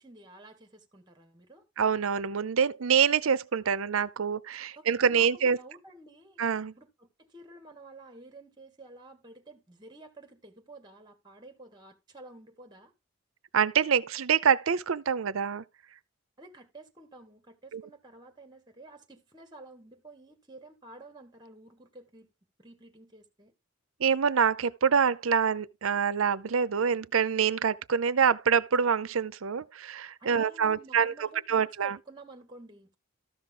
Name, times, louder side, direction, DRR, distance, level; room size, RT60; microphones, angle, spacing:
voice 1, 0.0-1.6 4.7-6.4 6.7-12.9 16.4-22.3 22.6-23.5 30.2-32.9, right 2 dB, 20° right, 1.8 m, -51 dB
voice 2, 1.8-5.6 6.4-6.7 13.5-15.6 17.7-17.8 24.0-31.1 31.5-31.9, right 6 dB, 80° right, 0.6 m, -26 dB
13.5 x 6.0 x 3.8 m
head